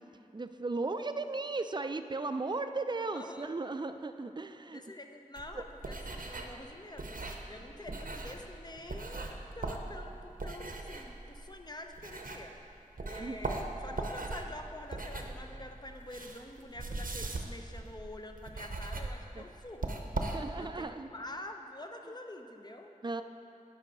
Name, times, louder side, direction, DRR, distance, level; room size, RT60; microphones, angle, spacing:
voice 1, 0.3-4.8 5.5-5.6 13.2-13.4 19.4-19.5 20.3-21.1 23.0-23.2, right 3 dB, 30° right, 9 dB, 0.4 m, -36 dB
voice 2, 3.1-3.5 4.7-7.2 7.5-12.5 13.0-20.0 20.6-22.9, left 1 dB, 30° left, 4 dB, 0.6 m, -47 dB
sound 1, 5.3-12.7 13.0-20.8, right 2 dB, 75° right, 0.7 m, -40 dB
9.7 x 5.6 x 5.3 m, 2.9 s
wide cardioid pair, 50°, 15 cm